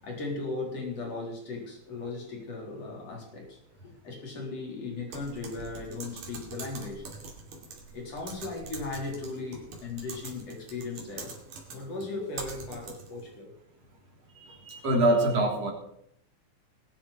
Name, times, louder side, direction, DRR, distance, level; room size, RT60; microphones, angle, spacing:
voice 1, 0.0-3.6 3.8-7.1 7.9-11.4 11.7-13.5, left 3 dB, 55° left, -1 dB, 5.0 m, -37 dB
Typing, 5.1-13.2, right 4 dB, 80° right, 4.0 m, -44 dB
voice 2, 14.4-15.7, right 1 dB, 55° right, 0 dB, 4.3 m, -25 dB
21.0 x 10.5 x 4.3 m, 0.72 s
omnidirectional pair, 3.3 m